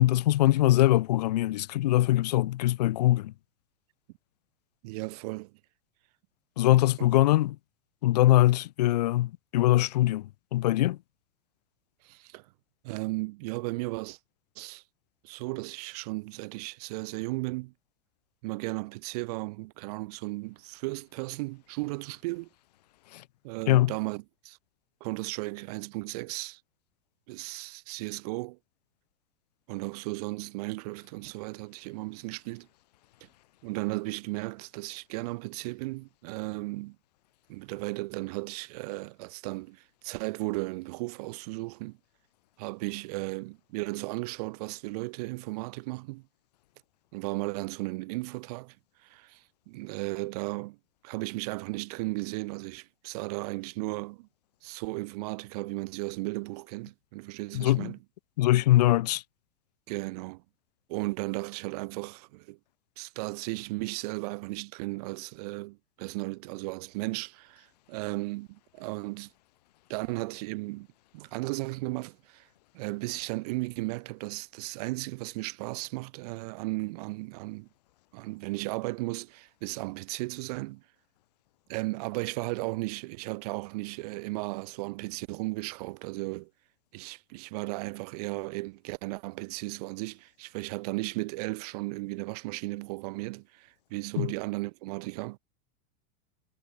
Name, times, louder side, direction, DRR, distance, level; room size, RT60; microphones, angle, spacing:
voice 1, 0.0-3.3 6.6-7.6 8.0-11.0 23.1-23.2 23.7-23.9 57.5-57.9 58.4-59.2 94.2-94.3, left 15 dB, 30° left, 0.4 m, -22 dB
voice 2, 4.8-5.5 12.0-12.5 12.8-14.2 14.6-14.8 15.2-17.7 18.4-22.5 23.4-24.6 25.0-26.6 27.3-28.6 29.7-32.7 33.6-37.0 37.5-42.0 42.6-46.2 47.1-48.8 49.0-50.8 51.0-54.3 54.6-58.0 59.9-60.4 60.9-62.6 63.0-69.3 69.9-70.9 71.1-72.5 72.7-77.7 78.1-80.8 81.7-86.5 86.9-95.4, right 23 dB, 30° right, 0.6 m, -35 dB
supercardioid pair, 180°, 42 cm